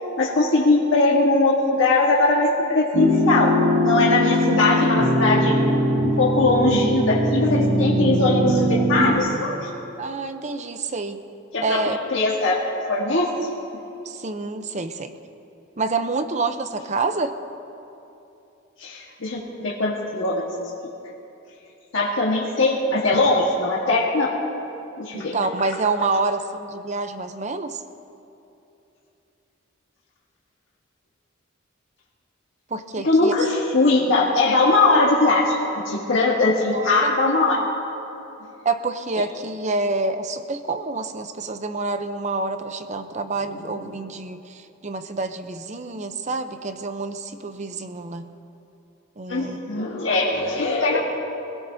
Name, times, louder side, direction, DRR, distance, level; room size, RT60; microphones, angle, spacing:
voice 1, 0.2-5.6 6.0-9.7 11.5-11.8 12.1-13.3 18.8-20.5 21.9-24.3 25.0-25.3 33.0-35.6 35.8-37.6 49.3-51.0, left 2 dB, 65° left, -4 dB, 1.5 m, -20 dB
sound 1, 2.9-9.2, equal, 90° right, 1.9 m, -21 dB
voice 2, 10.0-11.2 11.6-12.0 14.0-15.1 15.8-17.4 25.1-27.8 32.7-33.4 36.7-37.3 38.6-48.3 49.2-49.6, right 3 dB, 35° right, 9 dB, 0.7 m, -27 dB
25.0 x 16.5 x 2.7 m, 2.8 s
head